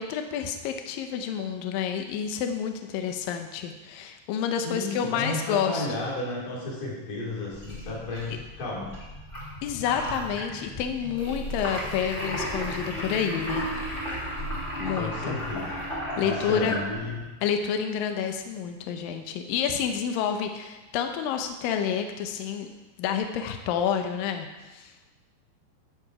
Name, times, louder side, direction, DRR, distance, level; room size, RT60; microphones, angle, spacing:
voice 1, 0.0-5.9 9.6-13.7 14.8-15.4 16.2-16.8 17.4-22.7 23.0-24.9, left 8 dB, 85° left, 6 dB, 2.0 m, -29 dB
voice 2, 4.6-8.9 14.9-15.9 16.2-17.3, left 2 dB, 50° left, -6 dB, 4.8 m, -33 dB
sound 1, 7.5-17.3, equal, 30° left, 1.4 m, -34 dB
12.5 x 6.9 x 4.8 m, 1.1 s
omnidirectional pair, 4.9 m